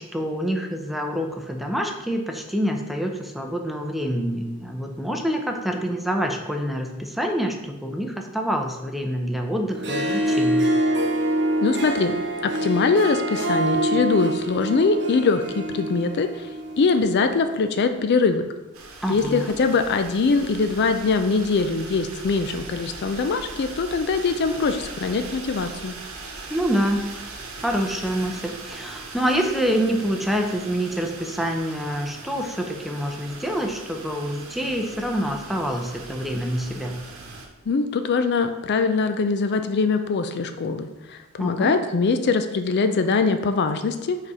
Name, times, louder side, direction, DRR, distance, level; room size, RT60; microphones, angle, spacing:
voice 1, 0.0-10.6 19.0-19.5 26.5-27.0 27.6-37.0 41.4-41.7, equal, ahead, 3 dB, 0.5 m, -26 dB
Harp, 9.7-17.1, right 1 dB, 55° right, 0.9 m, -25 dB
voice 2, 11.6-12.1 12.4-16.5 16.8-18.5 19.1-25.9 37.7-44.2, left 4 dB, 50° left, 8 dB, 0.4 m, -22 dB
sound 1, 18.7-37.5, right 3 dB, 75° right, 1.1 m, -40 dB
5.1 x 4.1 x 4.8 m, 1.1 s
head